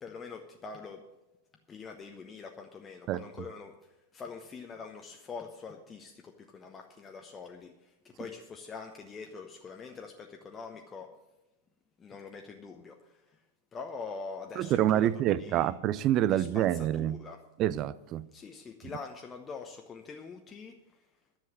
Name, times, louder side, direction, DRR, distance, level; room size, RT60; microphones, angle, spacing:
voice 1, 0.0-1.0 1.7-3.7 4.1-6.1 6.5-7.7 8.2-11.1 12.0-12.9 13.7-15.1 15.4-15.7 16.3-16.6 17.0-17.4 18.3-20.7, left 4 dB, 20° left, 1.0 m, -44 dB
voice 2, 3.1-3.5 14.5-17.2 17.6-18.3, right 12 dB, 35° right, 0.5 m, -27 dB
10.5 x 7.6 x 8.9 m
figure-of-eight pair, 90°, 0 cm